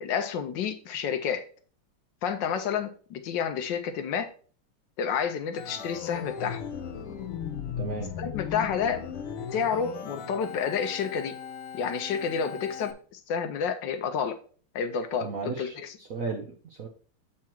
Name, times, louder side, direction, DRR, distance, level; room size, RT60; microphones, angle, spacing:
voice 1, 0.0-1.4 2.2-4.3 5.0-6.6 8.2-9.0 9.5-11.3 11.7-14.4 14.7-16.0, left 7 dB, 70° left, 9 dB, 1.2 m, -30 dB
Organ, 5.6-12.9, left 7 dB, 90° left, 1.7 m, -37 dB
voice 2, 7.8-8.1 15.2-16.9, right 4 dB, 60° right, 3 dB, 0.9 m, -35 dB
7.4 x 4.7 x 4.4 m, 0.42 s
omnidirectional pair, 2.3 m